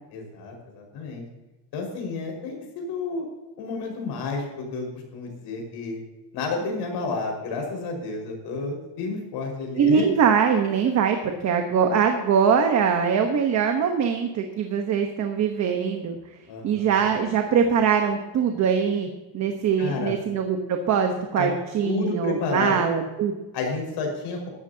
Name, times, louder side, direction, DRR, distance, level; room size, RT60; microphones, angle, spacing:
voice 1, 0.1-1.2 1.7-3.2 3.6-6.0 6.3-10.0 16.5-16.9 19.8-20.1 21.4-21.5 21.8-22.8 23.5-24.5, left 4 dB, 65° left, 1 dB, 5.2 m, -30 dB
voice 2, 9.8-16.2 16.6-19.1 19.3-23.4, right 7 dB, 40° right, 4 dB, 1.1 m, -22 dB
16.5 x 12.5 x 2.8 m, 1.1 s
cardioid pair, 180°, 43 cm